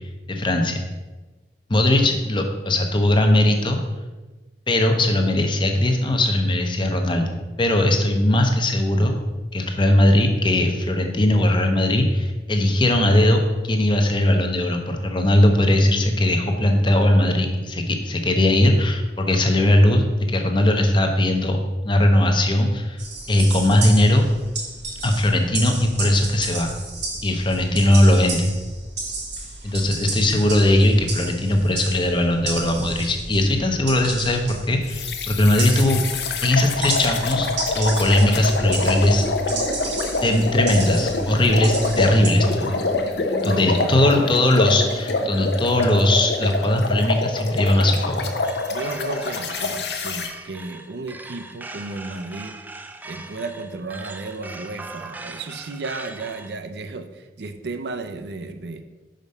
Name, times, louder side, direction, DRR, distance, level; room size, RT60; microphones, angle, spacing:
voice 1, 0.3-0.8 1.7-3.8 4.7-9.1 9.5-13.4 13.7-21.6 21.8-23.0 23.3-24.3 25.0-26.7 27.2-28.5 29.6-36.0 36.4-37.5 37.7-39.2 40.2-42.8 43.4-48.3, left 1 dB, 25° left, 4 dB, 0.7 m, -19 dB
voice 2, 1.7-2.2 43.4-44.4 48.7-52.6 53.0-58.8, right 3 dB, 70° right, 8 dB, 0.5 m, -34 dB
sound 1, 23.0-42.3, right 3 dB, 85° right, 1.8 m, -33 dB
sound 2, 34.9-50.3, left 3 dB, 70° left, 0.7 m, -26 dB
sound 3, 48.4-56.6, right 2 dB, 10° right, 0.3 m, -40 dB
5.3 x 5.1 x 5.4 m, 1.2 s
head